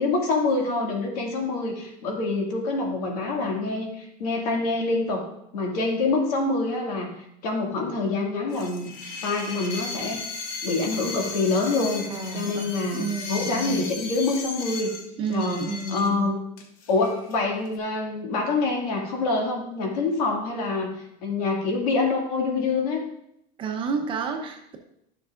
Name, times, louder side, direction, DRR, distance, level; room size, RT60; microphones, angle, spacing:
voice 1, 0.0-5.3 5.5-8.9 9.2-10.2 10.6-12.1 12.3-14.9 15.3-15.6 15.9-16.4 16.9-20.9 21.2-23.0, left 3 dB, 80° left, 0 dB, 2.3 m, -26 dB
sound 1, 8.5-16.1 16.6-17.3 17.7-17.8, left 4 dB, 45° left, 1.1 m, -36 dB
voice 2, 12.1-13.8 15.2-16.3 23.6-24.8, right 4 dB, 25° right, 4 dB, 0.8 m, -30 dB
11.5 x 6.9 x 2.5 m, 0.77 s
cardioid pair, 170°, 20 cm